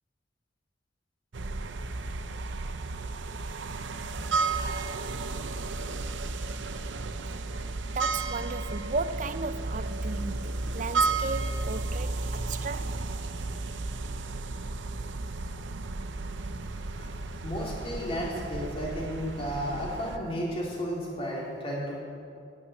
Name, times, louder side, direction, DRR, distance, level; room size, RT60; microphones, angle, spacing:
sound 1, 1.3-20.2, right 3 dB, 75° right, 0.7 m, -33 dB
voice 1, 7.9-13.0, right 4 dB, 40° right, 0.5 m, -35 dB
voice 2, 16.8-22.0, equal, 30° left, 3.4 m, -33 dB
12.0 x 9.0 x 9.7 m
head